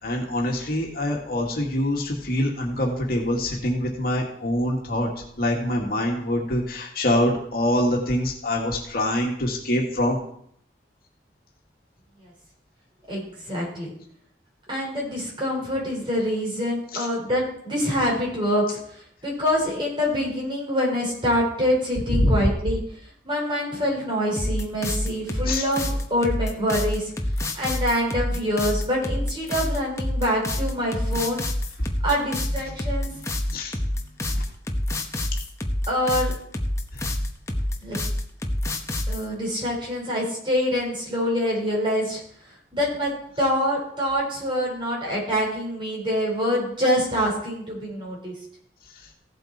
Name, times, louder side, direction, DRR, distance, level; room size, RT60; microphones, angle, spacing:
voice 1, 0.0-5.1 5.4-10.2 22.1-22.5 25.5-25.7 33.1-33.7 34.3-34.4 36.9-37.1, left 1 dB, 55° left, 0 dB, 2.1 m, -24 dB
voice 2, 13.1-13.9 14.7-18.8 19.2-22.8 23.2-27.1 27.5-31.4 32.0-33.1 35.9-36.3 37.8-38.0 39.1-42.2 42.7-43.1 43.4-48.3, equal, 30° right, -3 dB, 5.0 m, -25 dB
sound 1, 24.4-39.2, left 1 dB, 15° left, 1.0 m, -27 dB
15.5 x 7.8 x 4.4 m, 0.68 s
head